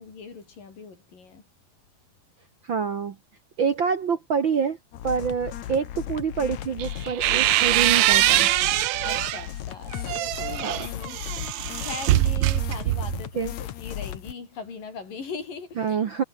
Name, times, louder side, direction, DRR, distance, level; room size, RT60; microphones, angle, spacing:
voice 1, 0.0-1.4 9.0-11.2 11.5-16.3, left 5 dB, 80° left, 7.0 m, -40 dB
voice 2, 2.6-3.1 3.6-4.8 5.0-8.5 10.6-10.9 13.3-13.5 15.8-16.2, right 6 dB, 50° right, 1.5 m, -26 dB
sound 1, 4.9-14.3, left 12 dB, 65° left, 2.4 m, -36 dB
sound 2, 6.8-9.5 9.9-13.3, right 16 dB, 70° right, 1.8 m, -23 dB
omnidirectional pair, 3.8 m